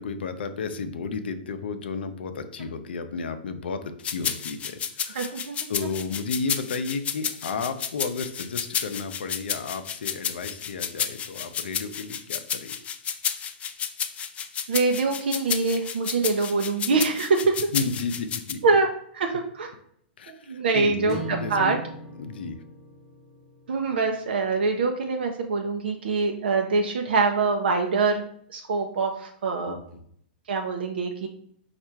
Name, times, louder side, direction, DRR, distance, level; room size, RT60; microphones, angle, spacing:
voice 1, 0.0-5.4 5.7-12.8 17.7-18.6 20.2-21.8 22.2-22.6 29.7-30.0, left 4 dB, 80° left, 9 dB, 0.5 m, -33 dB
sound 1, 4.0-18.5, left 8 dB, 25° left, 0.4 m, -31 dB
voice 2, 5.1-5.7 14.7-17.6 18.6-18.9 19.1-19.7 20.3-21.8 23.7-28.2 28.5-29.8 30.5-31.3, right 4 dB, 80° right, 3 dB, 0.6 m, -24 dB
sound 2, 21.1-25.4, right 2 dB, 15° right, 1.2 m, -41 dB
4.4 x 2.4 x 4.4 m, 0.65 s
hypercardioid pair, 120°, 5 cm